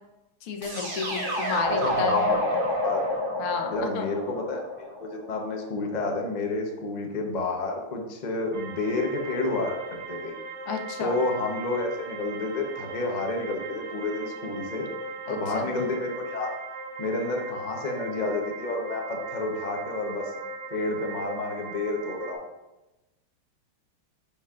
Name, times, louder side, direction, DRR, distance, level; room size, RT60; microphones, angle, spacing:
voice 1, 0.4-2.3 3.4-4.1 10.7-11.1 15.3-15.7, left 5 dB, 75° left, 4 dB, 1.7 m, -32 dB
sound 1, 0.6-5.5, equal, 35° right, 1.0 m, -29 dB
voice 2, 1.7-2.4 2.8-3.0 3.7-4.6 5.0-10.3 11.0-14.9 15.3-16.5 17.0-20.3 20.7-22.5, left 2 dB, 55° left, 1 dB, 0.4 m, -30 dB
sound 2, 8.5-22.3, right 2 dB, 65° right, 1.3 m, -38 dB
9.8 x 5.4 x 2.5 m, 1.0 s
omnidirectional pair, 2.4 m